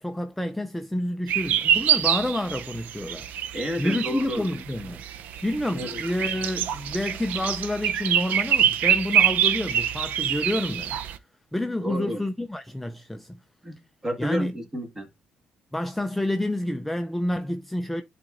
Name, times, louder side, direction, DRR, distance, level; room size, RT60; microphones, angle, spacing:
voice 1, 0.0-3.3 3.8-5.0 5.4-11.0 11.5-13.4 14.2-14.5 15.7-18.0, left 1 dB, 5° left, 0.4 m, -29 dB
sound 1, 1.3-11.2, right 9 dB, 75° right, 0.5 m, -25 dB
voice 2, 3.5-4.5 5.7-6.0 11.8-12.2 13.6-15.1, equal, 20° right, 1.6 m, -31 dB
11.0 x 4.1 x 2.5 m
cardioid pair, 135°, 3 cm